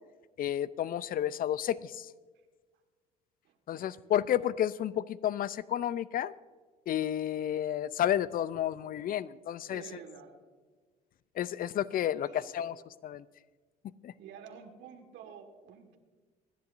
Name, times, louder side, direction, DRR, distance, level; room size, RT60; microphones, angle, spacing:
voice 1, 0.4-2.1 3.7-6.3 6.9-9.8 11.4-13.2 14.0-14.1, left 11 dB, 45° left, 18 dB, 0.5 m, -31 dB
voice 2, 3.4-4.0 9.7-10.4 12.2-12.4 14.2-16.0, right 7 dB, 60° right, 6 dB, 1.7 m, -50 dB
27.5 x 10.5 x 2.6 m, 1.4 s
hypercardioid pair, 65°, 21 cm